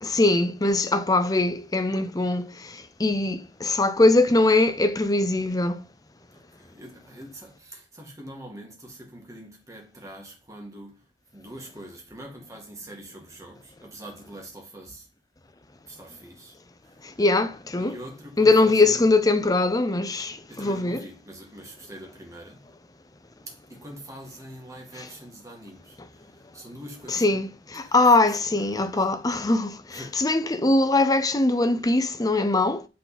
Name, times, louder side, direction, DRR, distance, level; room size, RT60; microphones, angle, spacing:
voice 1, 0.0-2.5 3.0-5.8 17.2-17.9 18.4-21.0 27.1-32.8, left 2 dB, 20° left, 0.5 m, -21 dB
voice 2, 6.3-11.1 11.3-15.1 15.9-16.6 16.8-17.1 17.8-19.1 20.5-22.7 23.5-26.3 26.5-27.4 27.8-28.1 28.6-29.1 29.9-30.2, right 1 dB, 15° right, 1.7 m, -44 dB
8.4 x 3.8 x 4.1 m
head